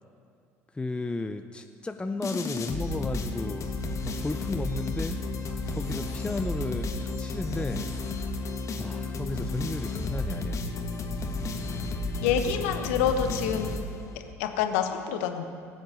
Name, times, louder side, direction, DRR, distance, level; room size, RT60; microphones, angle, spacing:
voice 1, 0.7-3.7 4.0-5.2 5.7-7.9 8.8-10.7, left 3 dB, 15° left, 7 dB, 0.6 m, -34 dB
sound 1, 2.2-14.3, left 2 dB, 45° left, 1.5 m, -32 dB
voice 2, 12.2-13.7 14.4-15.4, left 8 dB, 75° left, 7 dB, 1.1 m, -27 dB
18.5 x 7.9 x 7.0 m, 2.4 s
hypercardioid pair, 65°, 7 cm